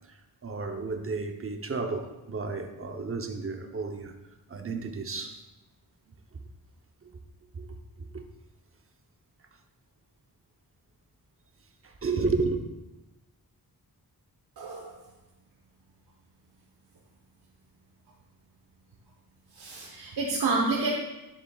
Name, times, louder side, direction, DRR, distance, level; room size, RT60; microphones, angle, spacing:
voice 1, 0.1-4.1 4.5-5.4 6.3-6.4 7.0-7.1 7.5-8.2 11.8-12.6, right 4 dB, 35° right, 0.8 m, -32 dB
voice 2, 14.6-15.0 19.6-20.9, right 3 dB, 85° right, 1.1 m, -29 dB
10.5 x 7.2 x 2.4 m
wide cardioid pair, 110°, 38 cm